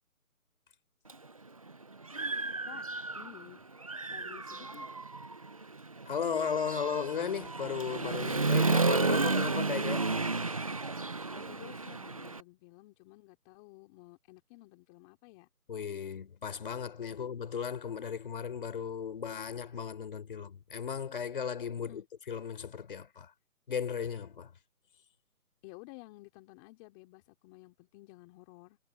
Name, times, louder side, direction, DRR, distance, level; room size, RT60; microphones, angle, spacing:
Human voice / Motorcycle, 1.1-1.2 1.7-3.5 3.8-12.4, right 3 dB, 25° right, 0.8 m, -32 dB
voice 1, 3.1-3.6 4.1-4.9 11.3-15.5 15.9-16.0 17.1-17.2 21.8-22.1 25.6-28.8, left 23 dB, 10° left, 3.3 m, -53 dB
voice 2, 6.1-10.1 15.7-23.3 23.7-24.5, left 7 dB, 35° left, 4.0 m, -36 dB
figure-of-eight pair, 165°, 45 cm